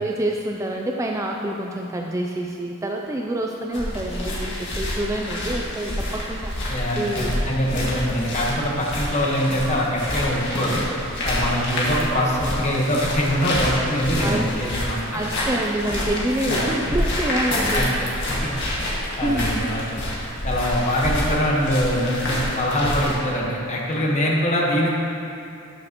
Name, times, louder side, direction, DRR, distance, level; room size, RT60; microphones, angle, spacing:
voice 1, 0.0-7.4 7.7-8.1 11.9-12.1 14.2-14.6 15.1-18.1 19.2-19.6 19.9-20.0, right 1 dB, 15° right, 0 dB, 0.3 m, -27 dB
sound 1, 3.7-23.1, left 1 dB, 55° left, 1.8 m, -27 dB
voice 2, 6.7-10.8 11.2-15.2 16.5-16.7 17.7-17.9 18.3-18.5 19.2-19.8 20.4-24.9, equal, 35° left, -3 dB, 1.2 m, -23 dB
13.0 x 6.3 x 3.0 m, 2.7 s
head